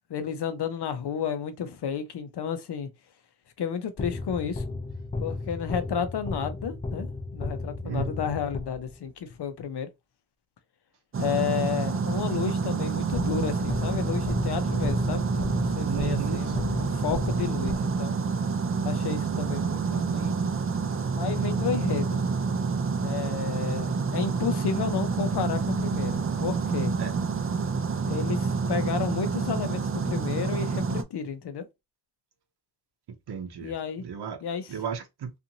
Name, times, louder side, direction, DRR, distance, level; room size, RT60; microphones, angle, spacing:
voice 1, 0.1-2.9 3.6-4.6 5.2-9.9 11.2-18.2 18.8-20.3 21.2-22.2 23.0-26.9 28.1-31.7 33.6-34.0 34.4-34.8, left 7 dB, 80° left, 0.6 m, -32 dB
sound 1, 4.0-9.1 13.1-18.3, left 3 dB, 20° left, 0.5 m, -34 dB
sound 2, 11.1-31.0, right 5 dB, 35° right, 0.4 m, -28 dB
voice 2, 15.8-16.5 27.0-27.1 33.3-33.7 34.0-34.4 34.7-35.3, right 7 dB, 75° right, 0.7 m, -33 dB
2.6 x 2.5 x 2.8 m
wide cardioid pair, 105°, 39 cm